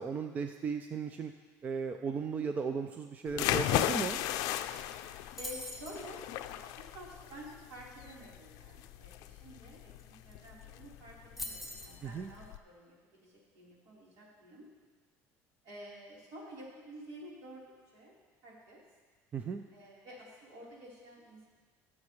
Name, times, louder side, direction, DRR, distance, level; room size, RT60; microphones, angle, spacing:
voice 1, 0.0-1.3 1.6-4.2 12.0-12.3 19.3-19.6, right 5 dB, 25° right, 6 dB, 0.4 m, -36 dB
sound 1, 3.3-12.6, left 13 dB, 65° left, 0.5 m, -36 dB
sound 2, 5.4-6.0 10.0-10.1 10.3-10.6 11.4-12.0, left 1 dB, ahead, 1.0 m, -42 dB
voice 2, 5.4-14.7 15.6-17.6 17.9-18.1 18.4-18.8 19.7-21.5, equal, 65° right, -5 dB, 4.0 m, -50 dB
21.5 x 7.3 x 3.2 m, 1.4 s
cardioid pair, 160°, 7 cm